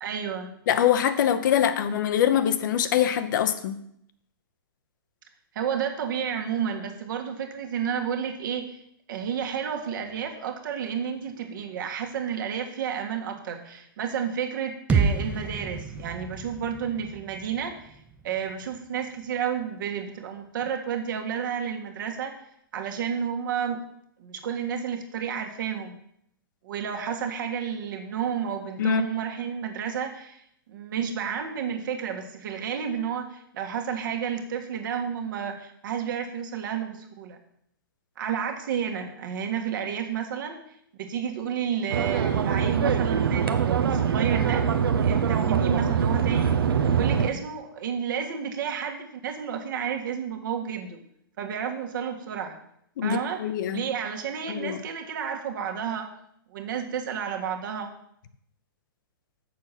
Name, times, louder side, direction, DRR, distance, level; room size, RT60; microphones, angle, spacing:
voice 1, 0.0-0.5 5.5-8.8 9.1-17.9 18.2-22.3 22.7-23.8 24.2-26.0 26.6-30.4 30.7-37.4 38.2-40.6 41.0-44.7 45.0-46.6 46.9-51.0 51.4-52.5 53.0-53.4 53.7-56.1 56.5-57.9, right 7 dB, 60° right, 3 dB, 1.6 m, -31 dB
voice 2, 0.7-3.8 28.8-29.0 53.0-53.8 54.5-54.8, left 10 dB, 55° left, 11 dB, 0.8 m, -24 dB
sound 1, 14.9-18.8, right 5 dB, 10° right, 0.7 m, -29 dB
sound 2, 41.9-47.3, right 7 dB, 80° right, 0.9 m, -23 dB
6.8 x 6.7 x 5.8 m, 0.71 s
hypercardioid pair, 140°, 12 cm